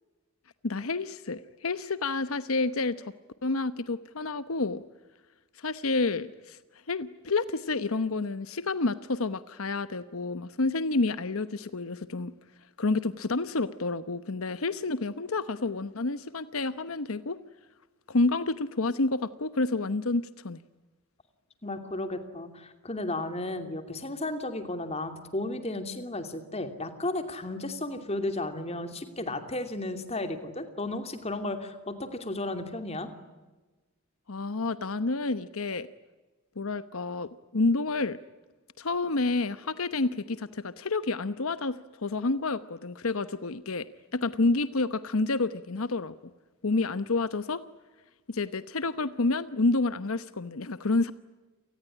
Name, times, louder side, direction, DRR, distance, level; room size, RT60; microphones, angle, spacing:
voice 1, 0.6-3.1 3.4-4.8 5.6-6.6 6.9-12.3 12.8-17.4 18.1-20.6 34.3-35.9 36.6-38.2 38.8-43.9 44.1-46.1 46.6-47.6 48.3-51.1, left 3 dB, 80° left, 13 dB, 1.0 m, -29 dB
voice 2, 21.6-33.1, left 2 dB, 30° left, 8 dB, 2.8 m, -34 dB
29.0 x 19.5 x 9.9 m, 1.2 s
head